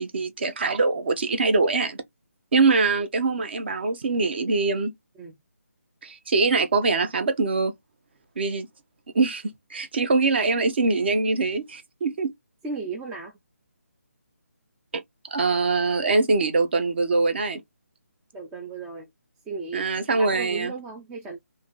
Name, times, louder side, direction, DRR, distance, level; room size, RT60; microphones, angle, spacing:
voice 1, 0.0-2.0 2.5-4.9 6.0-7.7 8.4-8.7 9.1-9.4 9.7-12.3 14.9-15.0 15.3-17.6 19.7-20.7, right 3 dB, 45° right, 0.9 m, -23 dB
voice 2, 12.6-13.3 18.3-19.1 19.5-19.9 20.2-21.4, right 4 dB, 5° right, 0.3 m, -35 dB
3.5 x 2.7 x 3.9 m
figure-of-eight pair, 150°, 8 cm